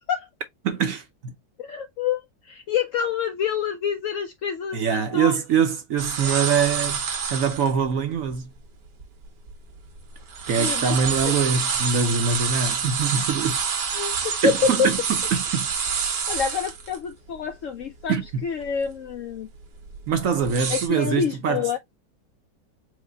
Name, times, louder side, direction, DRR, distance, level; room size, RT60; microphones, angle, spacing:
voice 1, 0.6-1.3 4.7-7.0 7.3-8.5 10.5-13.6 14.4-15.0 15.3-15.7 18.1-18.4 20.1-21.8, right 6 dB, 60° right, 0.9 m, -24 dB
voice 2, 1.6-5.4 6.2-6.4 10.6-11.0 11.2-11.4 13.9-14.9 16.3-18.2 18.4-19.5 20.7-21.8, left 7 dB, 75° left, 0.7 m, -27 dB
sound 1, 6.0-7.7 8.3-8.4 9.0-10.0 10.3-17.0 17.3-17.4 17.8-18.2 18.6-18.9 19.6-20.9, right 6 dB, 85° right, 1.7 m, -27 dB
4.8 x 2.1 x 3.7 m
omnidirectional pair, 1.8 m